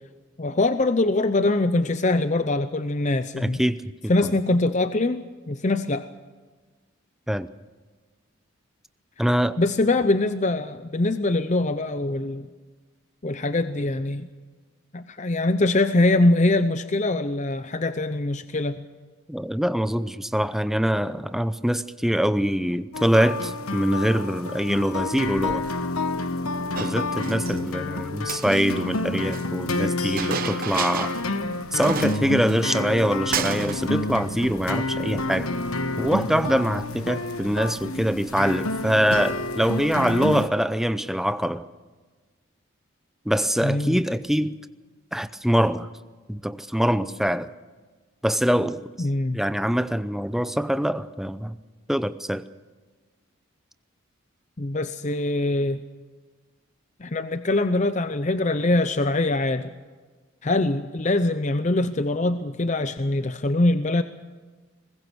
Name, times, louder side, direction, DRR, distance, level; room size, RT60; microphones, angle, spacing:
voice 1, 0.4-3.6 4.1-6.1 9.6-12.5 13.2-14.3 14.9-18.8 43.6-44.0 49.0-49.4 54.6-55.8 57.0-59.7 60.4-64.0, left 2 dB, 35° left, 10 dB, 0.7 m, -23 dB
voice 2, 3.4-3.8 4.0-4.4 7.3-7.5 9.2-9.6 19.3-25.7 26.8-31.1 31.7-35.5 36.0-41.7 43.3-44.6 45.1-45.9 46.3-47.5 48.2-48.9 49.3-51.6 51.9-52.4, equal, ahead, 12 dB, 0.6 m, -24 dB
sound 1, 22.9-40.5, left 2 dB, 90° left, 1.2 m, -29 dB
Chink clink, 26.7-27.6 28.2-29.4 30.2-31.3 31.5-31.6 31.8-33.0 33.3-33.8, right 6 dB, 40° right, 1.0 m, -31 dB
23.0 x 20.5 x 6.2 m, 1.4 s
head